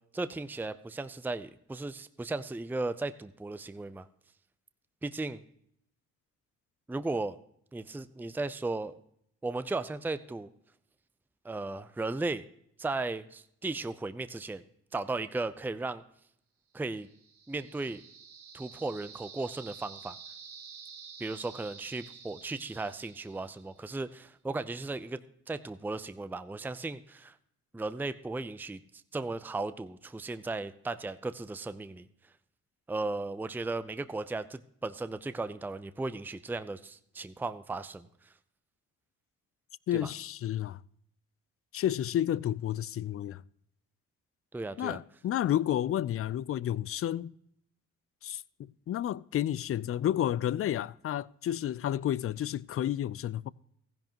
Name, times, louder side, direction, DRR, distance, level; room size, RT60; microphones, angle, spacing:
voice 1, 0.1-4.1 5.0-5.4 6.9-7.4 7.7-8.9 9.4-10.5 11.4-12.5 12.8-14.6 14.9-16.0 16.7-17.1 17.5-18.0 18.5-20.2 21.2-25.2 25.5-27.4 27.7-28.8 29.1-32.1 32.9-38.3 39.9-40.1 44.5-45.0, right 3 dB, 5° right, 0.5 m, -36 dB
sound 1, 17.0-23.9, right 6 dB, 80° right, 1.8 m, -50 dB
voice 2, 39.9-40.8 41.7-43.4 44.8-47.3 48.2-53.5, left 11 dB, 45° left, 0.4 m, -31 dB
15.0 x 10.5 x 2.9 m
supercardioid pair, 60°, 34 cm